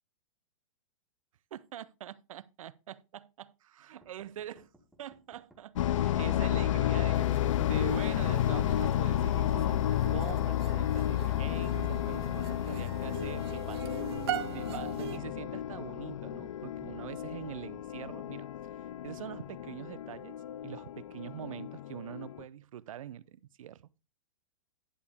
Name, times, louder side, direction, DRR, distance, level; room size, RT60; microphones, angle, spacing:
voice 1, 1.5-4.7 5.0-13.9 14.5-18.5 19.0-20.4 20.6-23.8, right 11 dB, 85° right, 0.5 m, -44 dB
sound 1, 4.0-5.6 6.2-7.8 8.4-10.0 10.6-12.2 13.0-14.6, equal, ahead, 1.0 m, -62 dB
sound 2, 5.8-22.4, left 12 dB, 70° left, 0.4 m, -31 dB
sound 3, 7.1-15.2, right 10 dB, 50° right, 0.9 m, -42 dB
10.5 x 7.0 x 3.3 m
supercardioid pair, 170°, 17 cm